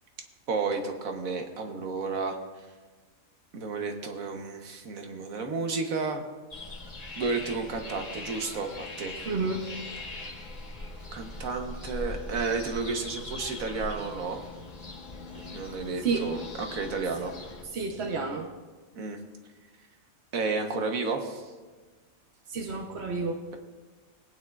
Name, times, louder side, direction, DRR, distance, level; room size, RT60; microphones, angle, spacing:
voice 1, 0.5-2.4 3.5-6.2 7.1-9.1 11.1-14.4 15.3-17.3 18.9-19.2 20.3-21.4, right 4 dB, 80° right, 4 dB, 1.5 m, -32 dB
sound 1, 6.5-17.6, left 2 dB, 30° left, 1.4 m, -41 dB
voice 2, 9.3-9.7 16.0-16.3 17.7-18.5 22.5-23.4, right 4 dB, 55° right, 0 dB, 1.1 m, -30 dB
20.0 x 9.1 x 2.4 m, 1.3 s
omnidirectional pair, 1.4 m